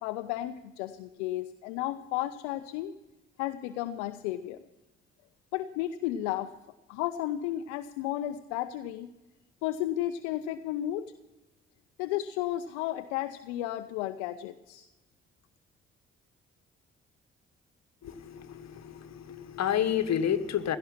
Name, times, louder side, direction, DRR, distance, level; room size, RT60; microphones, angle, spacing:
voice 1, 0.0-2.9 3.4-4.6 5.5-6.5 6.9-9.1 9.6-11.1 12.0-14.9, left 13 dB, 75° left, 11 dB, 0.6 m, -33 dB
voice 2, 18.0-20.8, left 9 dB, 50° left, 11 dB, 1.3 m, -30 dB
17.0 x 12.0 x 5.7 m, 1.1 s
figure-of-eight pair, 40°, 34 cm